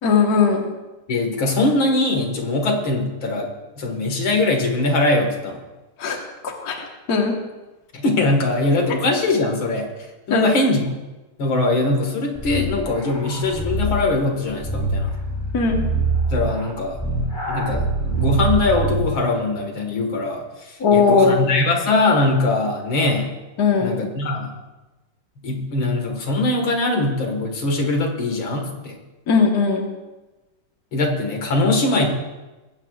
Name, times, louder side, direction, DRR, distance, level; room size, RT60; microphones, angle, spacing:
voice 1, 0.0-0.7 6.0-6.2 6.4-7.4 10.3-10.5 15.5-15.8 20.8-21.4 23.6-24.0 29.3-29.9, left 5 dB, 50° left, 1 dB, 1.8 m, -18 dB
voice 2, 1.1-3.5 3.8-5.6 7.9-9.9 10.3-10.8 11.4-15.1 16.3-17.0 17.5-20.4 20.9-23.3 23.8-24.5 25.4-29.0 30.9-32.1, left 2 dB, 70° left, 3 dB, 2.6 m, -21 dB
sound 1, 12.4-19.2, right 2 dB, 10° left, 3.5 m, -24 dB
20.5 x 16.0 x 2.4 m, 1.1 s
omnidirectional pair, 2.3 m